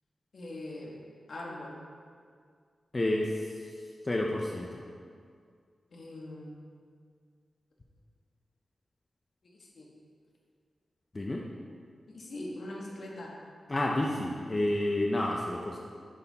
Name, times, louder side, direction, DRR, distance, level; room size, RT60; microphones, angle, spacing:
voice 1, 0.3-1.0 1.3-1.8 5.9-6.6 9.4-9.9 12.1-13.4, left 1 dB, 65° left, -2 dB, 1.4 m, -42 dB
voice 2, 2.9-3.4 4.0-4.8 11.1-11.4 13.7-15.8, left 1 dB, 30° left, -1 dB, 0.6 m, -29 dB
11.0 x 4.1 x 4.1 m, 2.1 s
wide cardioid pair, 90°, 0 cm